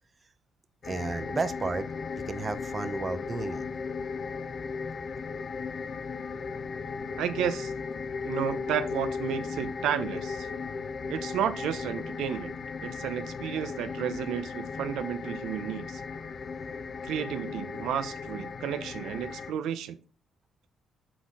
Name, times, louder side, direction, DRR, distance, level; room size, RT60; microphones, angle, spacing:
sound 1, 0.8-19.5, left 5 dB, 45° left, 0.6 m, -36 dB
voice 1, 0.8-1.9 2.1-3.7, right 4 dB, 30° right, 11 dB, 0.6 m, -32 dB
voice 2, 7.2-7.7 8.2-10.5 11.1-12.5 12.8-16.0 17.0-20.0, right 9 dB, 85° right, 10 dB, 0.6 m, -32 dB
6.0 x 4.1 x 4.7 m, 0.35 s
cardioid pair, 90°, 0 cm